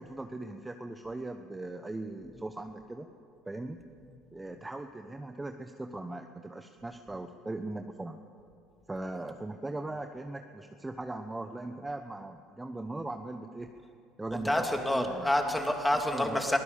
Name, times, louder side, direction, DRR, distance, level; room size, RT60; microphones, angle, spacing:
voice 1, 0.0-3.1 3.5-3.8 4.3-8.2 8.9-13.7 14.2-14.7 14.9-15.3 16.1-16.4, right 2 dB, 15° right, 6 dB, 1.0 m, -39 dB
voice 2, 14.3-16.6, left 1 dB, 5° left, 3 dB, 2.9 m, -28 dB
23.0 x 16.0 x 7.2 m, 2.4 s
supercardioid pair, 85°, 0 cm